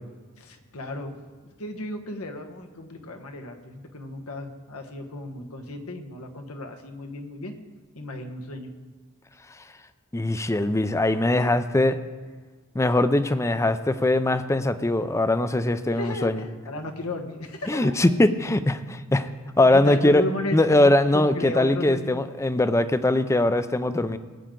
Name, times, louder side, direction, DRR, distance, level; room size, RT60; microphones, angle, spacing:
voice 1, 0.4-1.2 1.6-7.5 7.9-8.7 15.9-17.9 19.6-22.1, left 2 dB, 85° left, 4 dB, 1.4 m, -34 dB
voice 2, 10.1-12.0 12.7-16.4 17.7-19.3 19.6-20.2 20.5-24.2, left 1 dB, 15° left, 12 dB, 0.5 m, -21 dB
19.5 x 9.1 x 3.8 m, 1.4 s
head